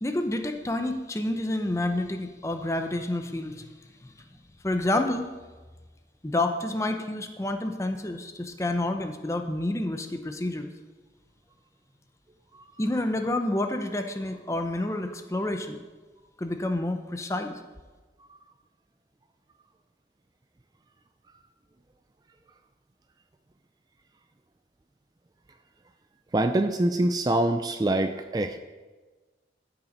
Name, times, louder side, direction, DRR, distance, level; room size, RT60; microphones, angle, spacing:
voice 1, 0.0-3.7 4.0-4.1 4.6-5.3 6.2-10.7 12.8-15.8 16.4-17.6, left 1 dB, 15° left, 6 dB, 0.6 m, -29 dB
voice 2, 26.3-28.6, right 1 dB, 20° right, 8 dB, 0.4 m, -25 dB
13.5 x 5.9 x 5.2 m, 1.3 s
head